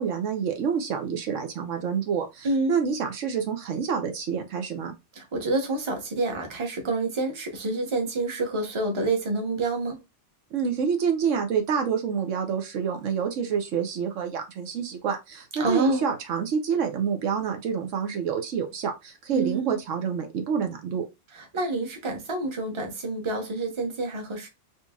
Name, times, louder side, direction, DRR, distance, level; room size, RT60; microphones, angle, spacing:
voice 1, 0.0-4.9 10.5-21.0, right 6 dB, 75° right, 1.1 m, -28 dB
voice 2, 2.4-2.7 5.1-10.0 15.6-16.0 19.3-19.8 21.3-24.5, right 2 dB, 25° right, 0.9 m, -28 dB
4.2 x 2.9 x 2.3 m
omnidirectional pair, 1.3 m